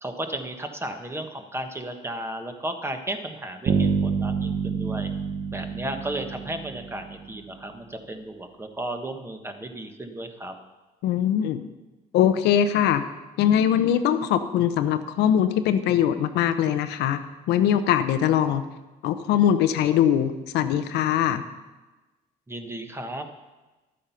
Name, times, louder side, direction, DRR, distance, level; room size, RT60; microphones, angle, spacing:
voice 1, 0.0-5.1 5.5-10.5 22.5-23.3, right 1 dB, 15° right, 6 dB, 1.2 m, -34 dB
Bass guitar, 3.7-7.5, right 6 dB, 50° right, 1.0 m, -27 dB
voice 2, 11.0-11.6 12.1-13.1 13.4-17.2 17.5-18.6 19.0-21.4, left 9 dB, 85° left, 9 dB, 0.8 m, -22 dB
12.5 x 8.5 x 5.7 m, 1.1 s
cardioid pair, 110°, 17 cm